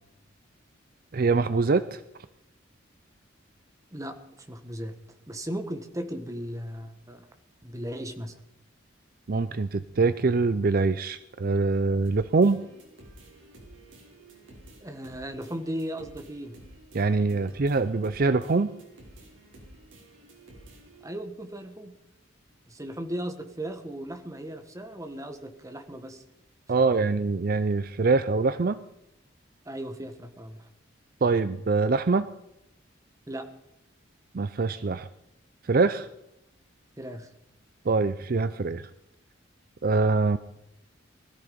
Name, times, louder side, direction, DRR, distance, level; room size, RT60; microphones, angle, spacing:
voice 1, 1.1-2.0 9.3-12.6 16.9-18.7 26.7-28.8 31.2-32.3 34.3-35.1 35.6-36.1 37.9-38.9 39.8-40.4, right 3 dB, 50° right, 14 dB, 0.5 m, -24 dB
voice 2, 4.5-4.9 5.3-7.3 7.6-8.3 14.8-16.5 17.2-17.5 21.0-22.0 22.7-26.2 26.7-27.0 29.6-30.7 33.3-33.5 37.0-37.3, right 1 dB, 15° right, 7 dB, 1.4 m, -36 dB
sound 1, 12.0-21.0, right 1 dB, 75° right, 5.0 m, -51 dB
20.5 x 13.5 x 5.2 m, 0.86 s
head